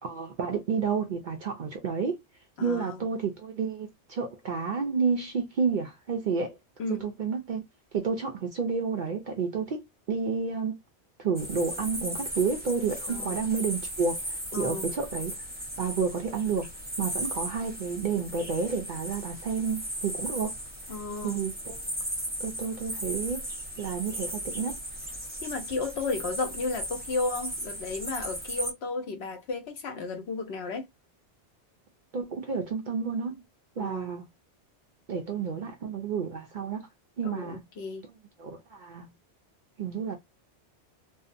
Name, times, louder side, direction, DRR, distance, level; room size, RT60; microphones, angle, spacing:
voice 1, 0.0-2.2 2.6-6.6 6.9-7.6 7.9-10.8 11.2-15.3 15.8-16.7 17.0-20.5 21.2-21.8 22.4-23.5 23.8-24.8 32.1-33.4 33.8-34.2 35.1-36.9 37.2-37.6 38.4-39.1 39.8-40.2, right 5 dB, 60° right, 0.5 m, -30 dB
voice 2, 2.6-3.0 6.8-7.1 13.1-13.4 14.5-14.9 20.9-21.5 25.4-30.8 33.8-34.1 37.2-38.1, left 3 dB, 70° left, 0.9 m, -33 dB
sound 1, 11.4-28.7, right 1 dB, 10° right, 0.6 m, -36 dB
2.7 x 2.0 x 2.5 m
omnidirectional pair, 1.2 m